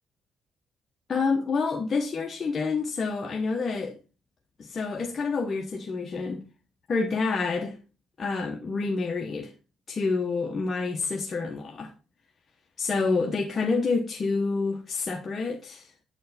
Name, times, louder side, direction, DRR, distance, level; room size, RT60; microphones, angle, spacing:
voice 1, 1.1-4.0 4.6-6.4 6.9-7.8 8.2-9.5 9.9-11.9 12.8-15.9, left 4 dB, 40° left, 1.0 m, -28 dB
7.9 x 4.6 x 4.1 m
cardioid pair, 90°, 0 cm